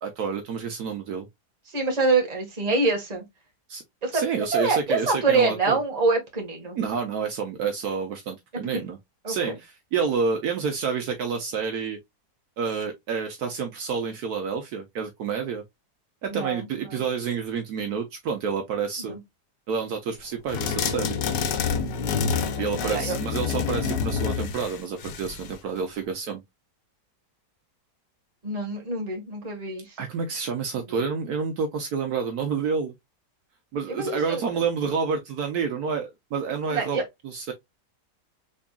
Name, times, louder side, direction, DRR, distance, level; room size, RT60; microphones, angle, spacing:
voice 1, 0.0-1.3 3.7-3.8 4.1-5.8 6.8-9.0 9.3-12.0 12.6-15.6 16.2-19.2 19.7-21.2 22.6-26.4 30.0-32.9 33.7-37.5, right 5 dB, 70° right, 1.2 m, -29 dB
voice 2, 1.7-3.2 4.0-4.2 4.5-6.8 8.5-8.8 9.2-9.5 16.3-17.0 19.0-19.2 22.8-23.2 28.4-29.8 33.9-34.4 36.7-37.0, right 3 dB, 25° right, 1.5 m, -25 dB
sound 1, 20.5-25.6, left 6 dB, 90° left, 1.3 m, -27 dB
4.0 x 3.5 x 2.2 m
omnidirectional pair, 1.8 m